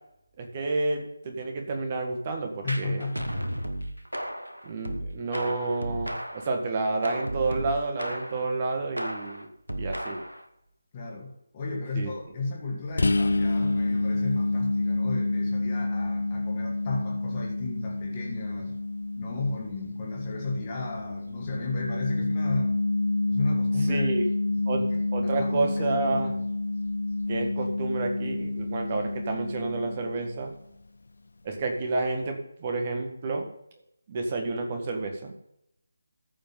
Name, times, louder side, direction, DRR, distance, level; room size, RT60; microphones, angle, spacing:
voice 1, 0.4-3.0 4.6-9.5 9.7-10.2 12.0-12.1 23.9-24.3 24.7-24.8 25.1-26.4 27.3-30.5 31.4-33.5 34.1-35.3, right 3 dB, 30° right, 4 dB, 1.8 m, -30 dB
voice 2, 2.6-3.5 10.9-18.7 19.2-22.8 23.3-24.1 24.5-26.3, left 3 dB, 25° left, -2 dB, 2.2 m, -34 dB
sound 1, 2.7-6.6 7.0-8.5 9.0-10.4, equal, 85° right, 1.2 m, -34 dB
sound 2, 13.0-30.5, left 2 dB, 60° left, 0.4 m, -29 dB
14.0 x 5.2 x 5.6 m, 0.77 s
figure-of-eight pair, 155°, 0 cm